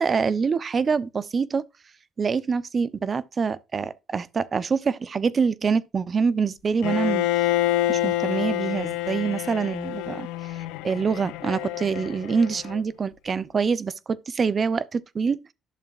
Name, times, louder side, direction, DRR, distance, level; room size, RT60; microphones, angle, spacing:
voice 1, 0.0-1.6 2.2-7.3 7.9-10.3 10.8-15.4, right 5 dB, 40° right, 0.8 m, -25 dB
Bowed string instrument, 6.8-12.8, left 14 dB, 90° left, 0.5 m, -27 dB
12.0 x 6.9 x 2.6 m
supercardioid pair, 75°, 0 cm